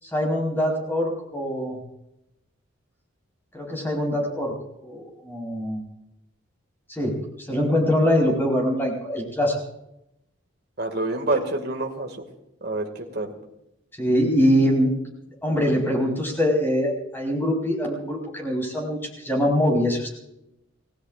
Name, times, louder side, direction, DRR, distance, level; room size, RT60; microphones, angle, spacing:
voice 1, 0.0-1.8 3.5-4.5 4.8-5.8 6.9-9.5 14.0-14.9 15.4-20.1, equal, 10° left, -2 dB, 4.5 m, -23 dB
voice 2, 10.8-12.1 12.6-13.3, right 2 dB, 50° right, 3 dB, 2.1 m, -27 dB
29.5 x 18.5 x 2.5 m, 0.86 s
head